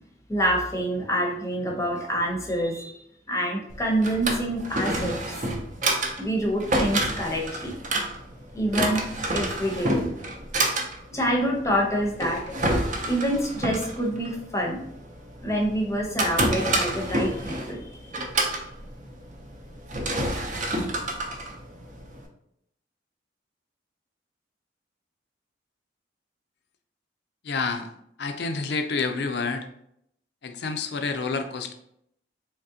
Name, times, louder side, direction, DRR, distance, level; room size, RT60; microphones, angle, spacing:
voice 1, 0.3-3.0 3.3-5.4 6.2-7.7 8.5-9.0 9.3-10.1 11.1-12.4 13.0-14.8 15.4-17.9, equal, 15° left, 0 dB, 0.7 m, -26 dB
Drawer open or close, 3.7-22.3, right 1 dB, 45° right, 0.6 m, -29 dB
voice 2, 27.4-27.9 28.2-29.7 30.4-31.7, left 4 dB, 65° left, 7 dB, 0.4 m, -28 dB
3.6 x 3.1 x 2.7 m, 0.73 s
head